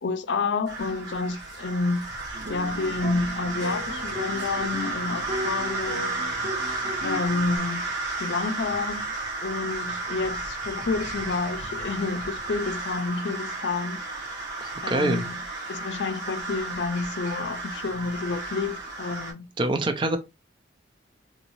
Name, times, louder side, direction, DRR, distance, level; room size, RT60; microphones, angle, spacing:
voice 1, 0.0-2.1 2.5-6.3 7.0-7.8 8.2-9.0 9.4-14.0 14.8-15.4 15.7-19.5, left 3 dB, 75° left, 0.5 m, -29 dB
sound 1, 0.7-19.3, right 2 dB, 70° right, 1.3 m, -33 dB
sound 2, 2.3-7.6, equal, 85° right, 1.3 m, -36 dB
voice 2, 14.6-15.2 19.6-20.2, right 2 dB, 25° right, 0.5 m, -25 dB
3.9 x 2.6 x 3.0 m
head